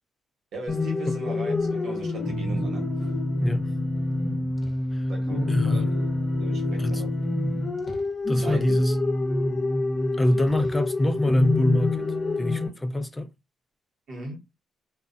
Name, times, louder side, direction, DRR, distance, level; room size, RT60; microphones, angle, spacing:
voice 1, 0.5-2.9 5.1-6.0 6.4-7.3 8.4-8.7 10.8-10.9 14.1-14.4, right 2 dB, 65° right, 1.1 m, -38 dB
sound 1, 0.7-12.7, left 2 dB, 30° left, 0.8 m, -27 dB
voice 2, 5.5-5.9 6.8-7.0 8.3-9.0 10.2-13.3, left 1 dB, 15° left, 0.4 m, -24 dB
2.3 x 2.1 x 2.5 m
cardioid pair, 90°, 0 cm